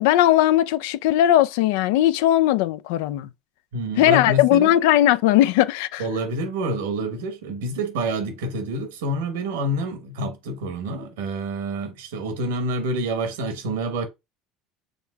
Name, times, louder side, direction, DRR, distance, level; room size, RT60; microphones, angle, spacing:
voice 1, 0.0-3.3 4.0-6.0, left 13 dB, 75° left, 0.3 m, -18 dB
voice 2, 3.7-4.8 6.0-14.1, right 1 dB, 80° right, 1.0 m, -27 dB
5.2 x 3.5 x 2.3 m
hypercardioid pair, 75°, 0 cm